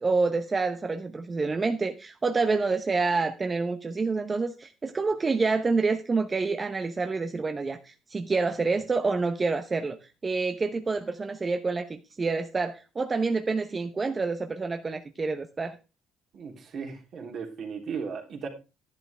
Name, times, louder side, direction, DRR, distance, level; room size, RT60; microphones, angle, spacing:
voice 1, 0.0-15.8, right 4 dB, 25° right, 7 dB, 0.9 m, -28 dB
voice 2, 16.3-18.5, right 6 dB, 55° right, 3 dB, 3.2 m, -36 dB
11.0 x 10.5 x 3.4 m, 0.29 s
cardioid pair, 95°, 0 cm